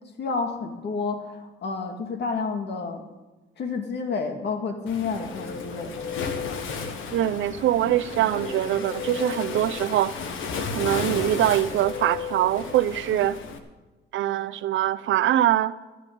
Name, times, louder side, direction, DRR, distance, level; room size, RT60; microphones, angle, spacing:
voice 1, 0.2-3.0 3.6-6.0, left 4 dB, 60° left, 5 dB, 2.0 m, -30 dB
Guitar, 4.8-7.3 8.1-13.5, left 7 dB, 35° left, 1.4 m, -38 dB
Waves surf, 4.9-13.6, left 5 dB, 85° left, 1.5 m, -34 dB
voice 2, 7.1-10.1 10.7-13.4 14.1-15.7, right 12 dB, 75° right, 12 dB, 0.7 m, -23 dB
14.0 x 11.0 x 5.3 m, 1.2 s
cardioid pair, 90°, 20 cm